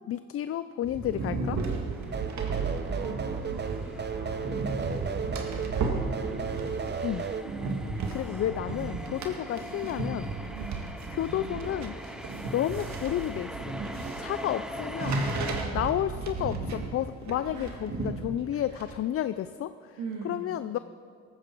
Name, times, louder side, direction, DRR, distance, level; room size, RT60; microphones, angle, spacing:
voice 1, 0.1-1.6 7.0-7.3 8.1-10.3 11.1-12.0 12.5-13.8 14.2-15.2 15.7-20.0 20.2-20.8, left 11 dB, 50° left, 13 dB, 0.4 m, -31 dB
sound 1, 0.8-19.0, right 3 dB, 65° right, 2.0 m, -34 dB
sound 2, 1.9-15.6, equal, ahead, 0.9 m, -43 dB
sound 3, 2.1-7.4, right 5 dB, 35° right, 0.8 m, -34 dB
voice 2, 2.9-7.3 8.2-8.4 10.5-11.2 12.2-12.6 15.5-15.9 17.5-17.7 18.7-18.8 20.0-20.7, right 4 dB, 90° right, -2 dB, 2.2 m, -45 dB
18.0 x 14.5 x 4.6 m, 2.4 s
cardioid pair, 90°, 30 cm